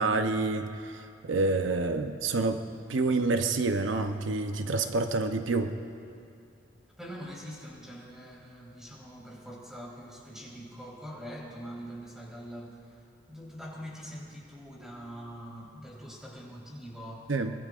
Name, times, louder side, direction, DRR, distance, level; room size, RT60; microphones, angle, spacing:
voice 1, 0.0-2.6 2.9-5.7 17.3-17.5, right 3 dB, 85° right, 7 dB, 0.7 m, -28 dB
voice 2, 7.0-17.3, equal, 5° right, -4 dB, 3.7 m, -44 dB
23.5 x 22.0 x 2.5 m, 2.5 s
head